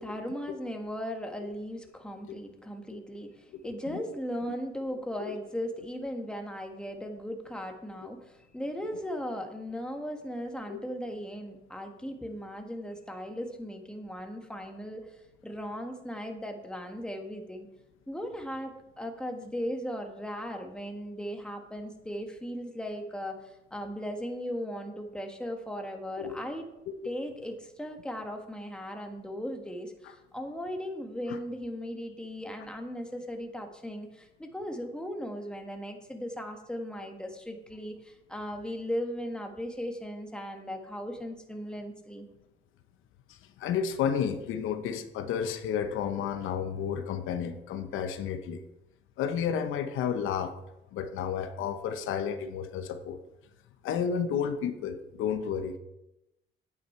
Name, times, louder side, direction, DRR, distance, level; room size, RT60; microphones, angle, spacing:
voice 1, 0.0-17.7 18.1-26.6 27.0-42.3, equal, 5° left, 3 dB, 1.5 m, -37 dB
voice 2, 3.5-4.0 5.3-5.4 10.7-10.8 26.2-26.4 31.3-31.4 43.3-48.6 49.2-50.5 50.9-53.2 53.8-55.8, left 7 dB, 90° left, 8 dB, 0.9 m, -32 dB
9.4 x 8.6 x 4.4 m, 0.90 s
cardioid pair, 90°, 20 cm